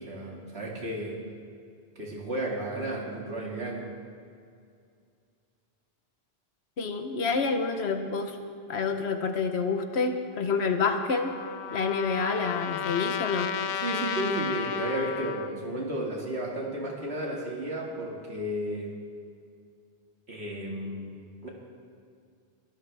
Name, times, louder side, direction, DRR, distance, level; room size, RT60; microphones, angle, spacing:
voice 1, 0.1-1.2 2.0-3.9 13.8-19.0 20.3-21.1 21.4-21.5, right 1 dB, 90° right, -2 dB, 2.5 m, -33 dB
voice 2, 6.8-8.4 8.7-11.3 11.7-13.5, left 4 dB, 80° left, 6 dB, 1.3 m, -28 dB
Trumpet, 10.8-15.5, left 8 dB, 55° left, 0.7 m, -33 dB
22.5 x 12.5 x 3.5 m, 2.3 s
omnidirectional pair, 1.1 m